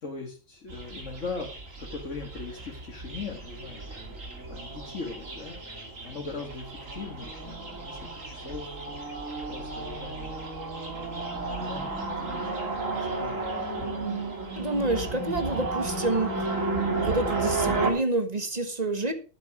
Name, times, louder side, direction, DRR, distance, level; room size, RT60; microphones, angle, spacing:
voice 1, 0.0-3.9 4.2-5.8 6.0-10.5 10.9-13.4, left 4 dB, 70° left, 2.0 m, -40 dB
sound 1, 0.7-17.9, right 3 dB, 85° right, 3.2 m, -33 dB
voice 2, 14.6-16.3 17.0-19.1, right 2 dB, 35° right, 1.4 m, -28 dB
11.5 x 9.3 x 4.8 m
omnidirectional pair, 1.3 m